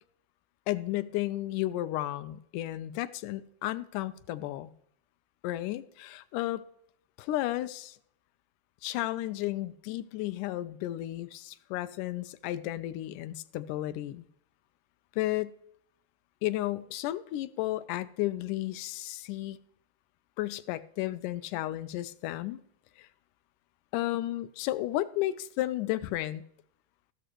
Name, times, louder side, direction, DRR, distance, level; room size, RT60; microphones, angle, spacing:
voice 1, 0.7-4.7 5.4-6.6 7.2-8.0 8.8-14.3 15.2-15.5 16.4-19.6 20.4-22.6 23.0-23.1 23.9-26.4, left 15 dB, 85° left, 13 dB, 2.2 m, -33 dB
13.5 x 13.0 x 3.0 m, 0.72 s
omnidirectional pair, 3.6 m